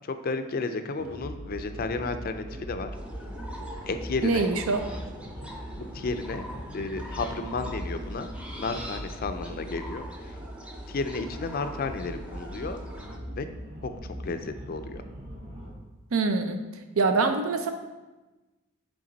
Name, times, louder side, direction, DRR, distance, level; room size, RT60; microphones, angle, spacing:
voice 1, 0.0-2.9 3.8-4.5 5.9-6.4 6.7-10.1 10.9-12.8 13.4-13.5 13.8-15.0, left 3 dB, 45° left, 9 dB, 0.4 m, -32 dB
sound 1, 1.0-15.7, equal, 35° right, 1.4 m, -40 dB
sound 2, 2.9-13.2, equal, 5° right, 0.6 m, -44 dB
voice 2, 4.2-4.8 16.1-16.6 17.0-17.7, right 4 dB, 85° right, 7 dB, 0.6 m, -24 dB
7.8 x 3.5 x 4.0 m, 1.1 s
head